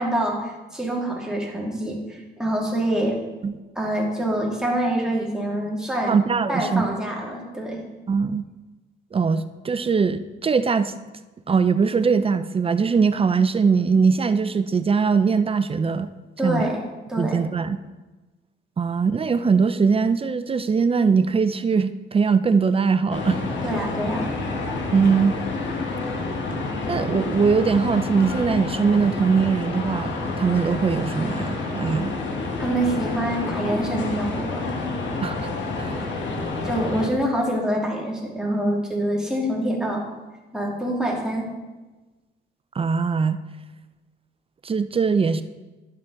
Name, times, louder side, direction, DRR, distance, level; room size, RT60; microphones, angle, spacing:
voice 1, 0.0-3.2 3.8-6.2 6.5-7.8 16.4-16.8 17.1-17.4 23.6-24.3 32.6-34.7 36.6-40.0 40.5-41.5, right 1 dB, 5° right, -3 dB, 2.3 m, -25 dB
voice 2, 6.1-6.9 8.1-8.4 9.1-10.9 11.5-16.1 16.4-16.7 17.2-17.8 18.8-23.4 24.9-25.3 26.9-32.1 35.2-35.5 35.8-35.9 42.8-43.4 44.6-45.4, right 5 dB, 30° right, 12 dB, 0.5 m, -21 dB
sound 1, 23.1-37.1, left 3 dB, 70° left, 1.5 m, -29 dB
12.0 x 5.9 x 3.9 m, 1.2 s
cardioid pair, 90°, 20 cm